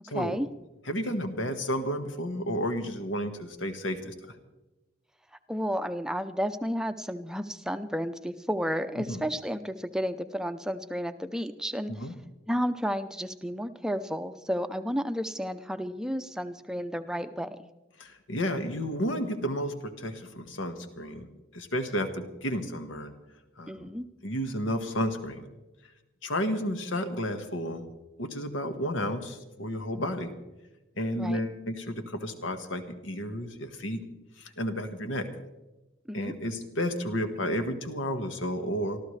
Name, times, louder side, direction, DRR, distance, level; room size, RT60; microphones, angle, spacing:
voice 1, 0.1-0.5 5.5-11.9 12.5-17.6 23.7-24.1 31.2-31.4 36.1-36.3, equal, 5° right, 9 dB, 0.5 m, -32 dB
voice 2, 0.9-4.4 9.0-9.2 11.9-12.1 18.0-23.1 23.6-23.9 24.2-25.5 26.2-27.8 28.2-30.3 31.0-34.0 34.4-35.3 36.1-39.0, equal, 85° left, 7 dB, 1.6 m, -32 dB
25.0 x 14.0 x 3.3 m, 1.1 s
head